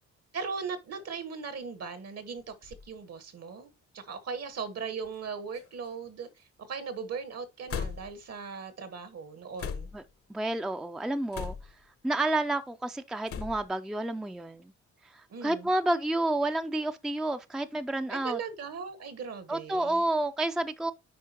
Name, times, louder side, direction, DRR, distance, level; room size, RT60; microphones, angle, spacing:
voice 1, 0.3-9.9 15.3-15.7 18.1-20.1, right 5 dB, 55° right, 1.4 m, -39 dB
sound 1, 2.4-2.9 3.7-3.8 5.0-5.3 5.5-6.1 7.7-8.3 9.6-10.1 11.3-11.9 13.3-13.7, left 7 dB, 50° left, 0.8 m, -38 dB
voice 2, 10.3-11.6 12.0-14.7 15.1-18.4 19.5-20.9, right 2 dB, ahead, 0.5 m, -30 dB
8.5 x 4.9 x 2.9 m
cardioid pair, 90°, 30 cm